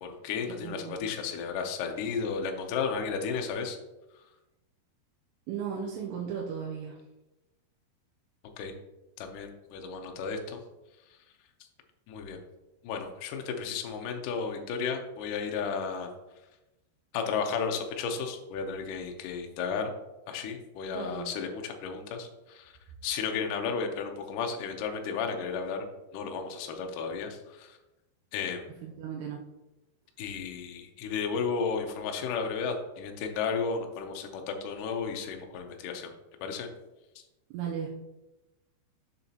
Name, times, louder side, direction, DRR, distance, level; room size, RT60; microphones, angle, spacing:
voice 1, 0.0-3.8 8.6-8.7 9.2-10.6 12.1-12.4 12.8-16.1 17.1-19.9 20.3-22.7 23.0-25.9 26.1-27.8 28.3-28.7 30.2-36.1 36.4-36.7, left 5 dB, 80° left, 3 dB, 1.9 m, -33 dB
voice 2, 0.6-1.0 5.5-7.0 20.9-21.3 28.8-29.4 37.5-38.0, right 7 dB, 85° right, -2 dB, 3.0 m, -36 dB
7.0 x 6.8 x 2.9 m, 1.0 s
omnidirectional pair, 4.9 m